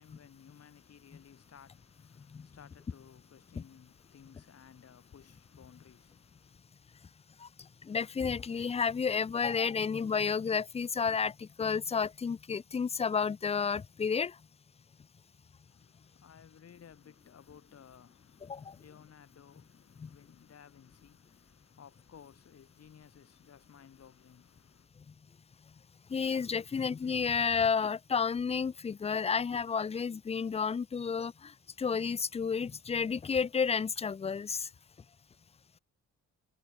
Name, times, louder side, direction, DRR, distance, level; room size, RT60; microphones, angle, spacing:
voice 1, 0.0-6.6 15.6-24.9, left 8 dB, 55° left, 6.6 m, -57 dB
voice 2, 7.8-14.4 18.5-18.8 20.0-20.1 26.1-34.7, left 6 dB, 20° left, 0.5 m, -31 dB
cardioid pair, 90°, 30 cm